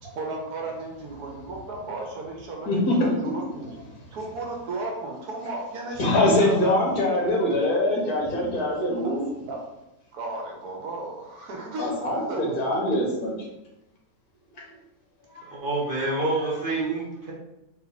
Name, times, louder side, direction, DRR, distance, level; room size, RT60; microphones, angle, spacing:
voice 1, 0.0-3.8 4.1-7.1 8.6-9.6 10.1-12.9, right 2 dB, 75° right, 0 dB, 1.2 m, -35 dB
voice 2, 2.7-3.3 6.0-9.2 11.8-13.3, left 1 dB, 70° left, -2 dB, 1.6 m, -23 dB
voice 3, 15.3-17.3, right 2 dB, 50° right, -4 dB, 0.7 m, -27 dB
3.6 x 2.9 x 4.0 m, 0.93 s
omnidirectional pair, 1.7 m